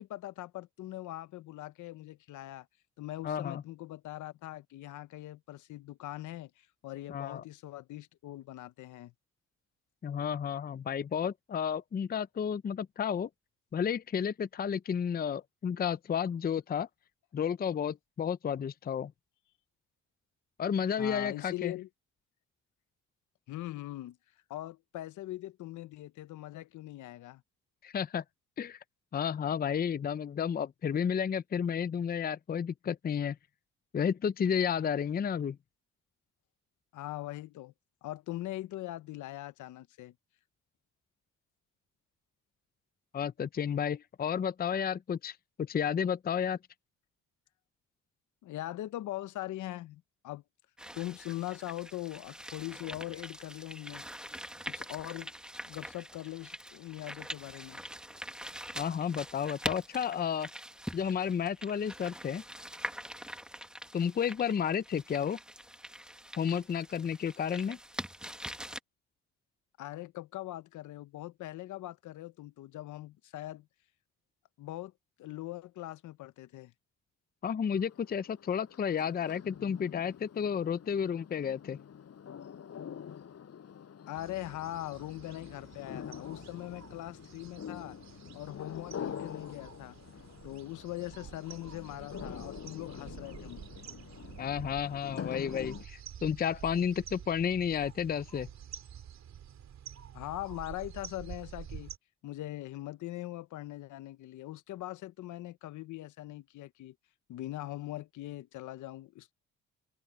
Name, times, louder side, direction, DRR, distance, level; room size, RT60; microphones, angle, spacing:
voice 1, 0.0-2.7 3.0-6.5 6.8-9.1 21.0-21.9 23.5-24.2 24.5-27.4 36.9-37.7 38.0-40.1 48.4-50.4 50.9-54.0 54.6-55.3 55.7-57.8 69.8-73.7 74.6-74.9 75.2-76.7 84.1-88.0 88.3-90.0 90.4-93.9 100.1-101.9 102.2-106.9 107.3-109.3, left 15 dB, 80° left, 0.9 m, -41 dB
voice 2, 3.2-3.6 7.1-7.4 10.0-13.3 13.7-16.9 17.3-19.1 20.6-21.7 27.8-28.2 28.6-28.8 29.1-33.4 33.9-35.6 43.1-46.6 58.8-60.5 60.9-62.4 63.9-65.4 66.4-67.8 77.4-81.8 94.4-98.5, left 7 dB, 30° left, 0.6 m, -32 dB
sound 1, 50.8-68.8, equal, 5° right, 1.4 m, -44 dB
sound 2, 77.7-95.9, left 8 dB, 55° left, 5.6 m, -46 dB
sound 3, 84.1-102.0, right 9 dB, 65° right, 3.0 m, -49 dB
open air
cardioid pair, 90°, 30 cm